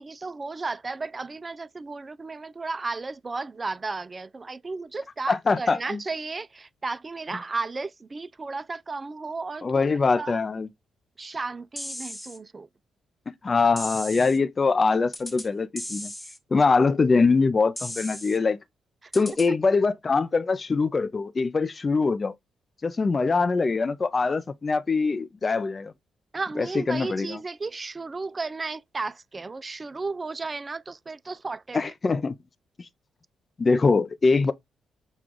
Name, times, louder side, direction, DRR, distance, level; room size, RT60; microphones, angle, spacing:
voice 1, 0.0-9.9 10.2-10.4 11.2-12.7 19.0-19.2 26.3-31.9, right 3 dB, 35° right, 0.3 m, -34 dB
voice 2, 5.3-6.0 9.6-10.7 13.4-16.1 16.5-18.6 19.1-22.3 22.8-25.9 26.6-27.4 31.7-32.3 33.6-34.5, left 4 dB, 40° left, 0.5 m, -23 dB
sound 1, 11.8-12.4 13.8-14.4 15.1-15.5 15.8-16.4 17.8-18.4 19.1-19.5, left 1 dB, 10° left, 0.8 m, -36 dB
6.0 x 2.3 x 3.6 m
supercardioid pair, 55°, 0 cm